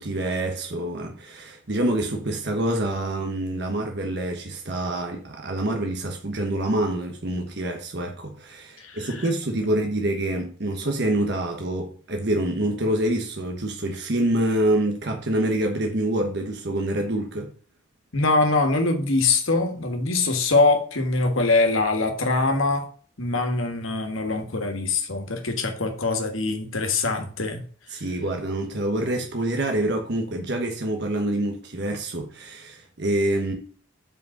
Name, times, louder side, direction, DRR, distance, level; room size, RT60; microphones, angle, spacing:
voice 1, 0.0-17.5 27.9-33.5, right 1 dB, 50° right, 1.1 m, -26 dB
voice 2, 8.8-9.3 18.1-22.9 23.2-27.6, left 3 dB, 75° left, 1.5 m, -23 dB
5.2 x 5.0 x 6.4 m
head